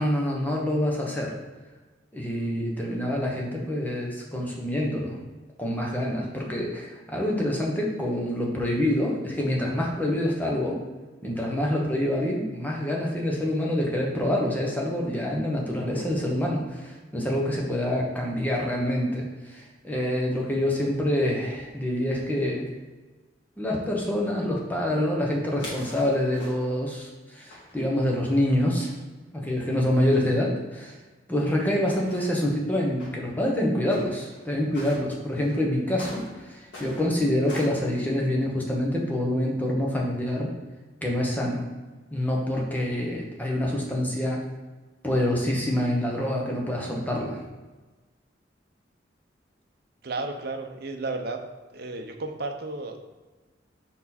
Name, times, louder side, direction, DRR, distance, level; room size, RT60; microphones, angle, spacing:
voice 1, 0.0-1.3 2.1-5.2 5.6-10.8 11.2-22.7 23.6-28.9 29.3-31.0 31.3-40.5 41.0-41.6 42.1-44.4 45.0-47.4, left 1 dB, 10° left, -2 dB, 1.1 m, -26 dB
sound 1, 25.6-26.9 27.5-28.4 29.2-29.3 29.4-29.5 30.6-30.7 31.4-32.6 33.0-33.1 33.9-34.4 34.7-35.0 35.4-37.9, left 1 dB, 90° left, 1.9 m, -43 dB
voice 2, 50.0-51.4 51.7-53.0, right 3 dB, 60° right, 4 dB, 0.7 m, -33 dB
5.7 x 4.6 x 4.2 m, 1.3 s
head